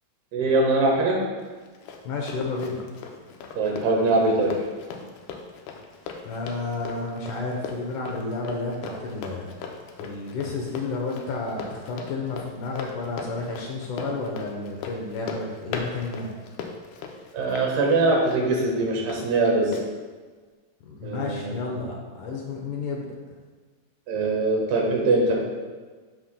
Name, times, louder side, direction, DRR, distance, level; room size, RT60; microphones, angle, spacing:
voice 1, 0.3-1.2 3.6-4.5 17.3-19.8 21.0-21.5 24.1-25.3, right 2 dB, 85° right, -1 dB, 3.4 m, -22 dB
Run, 1.4-19.2 19.7-19.9, left 5 dB, 90° left, 2.7 m, -39 dB
voice 2, 2.0-2.8 6.3-9.5 10.0-16.3 20.8-23.2, left 3 dB, 70° left, -1 dB, 2.0 m, -31 dB
14.0 x 5.6 x 2.2 m, 1.4 s
omnidirectional pair, 4.5 m